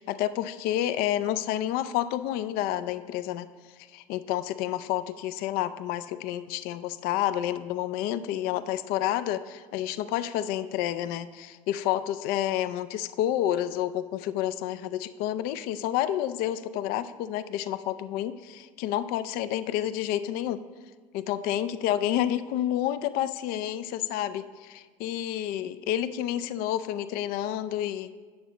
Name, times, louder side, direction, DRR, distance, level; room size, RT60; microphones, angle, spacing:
voice 1, 0.0-3.5 3.9-20.6 21.1-28.1, left 12 dB, 60° left, 13 dB, 0.4 m, -29 dB
8.8 x 6.3 x 4.0 m, 1.4 s
hypercardioid pair, 80°, 17 cm